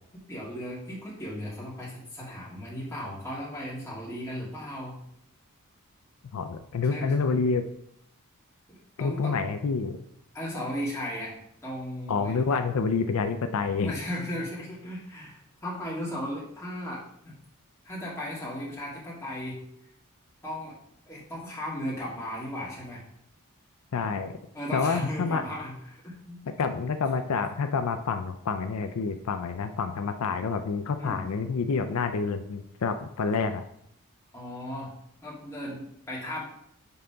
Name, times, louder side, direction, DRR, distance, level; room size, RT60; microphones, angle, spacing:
voice 1, 0.3-5.0 6.9-7.1 8.7-9.4 10.3-11.4 11.6-12.4 13.8-17.3 17.8-19.6 20.4-20.8 21.1-23.0 24.5-26.4 31.0-31.3 34.3-34.9 35.2-36.4, left 1 dB, 15° left, -6 dB, 2.1 m, -36 dB
voice 2, 6.3-7.6 9.0-10.0 12.1-14.0 23.9-24.4 24.7-25.4 26.6-33.6, left 5 dB, 75° left, 8 dB, 0.4 m, -28 dB
5.5 x 3.9 x 5.6 m, 0.73 s
head